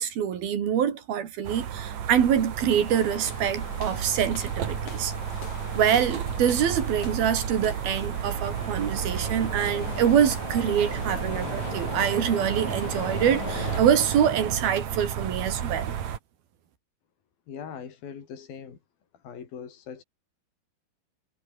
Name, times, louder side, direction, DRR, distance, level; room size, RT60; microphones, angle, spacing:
voice 1, 0.0-5.1 5.7-15.9, right 9 dB, 75° right, 4.6 m, -25 dB
sound 1, 1.4-16.2, right 9 dB, 55° right, 2.9 m, -32 dB
sound 2, 2.8-13.8, left 8 dB, 55° left, 3.6 m, -39 dB
voice 2, 17.5-18.8 19.2-20.0, left 7 dB, 70° left, 5.5 m, -40 dB
omnidirectional pair, 4.3 m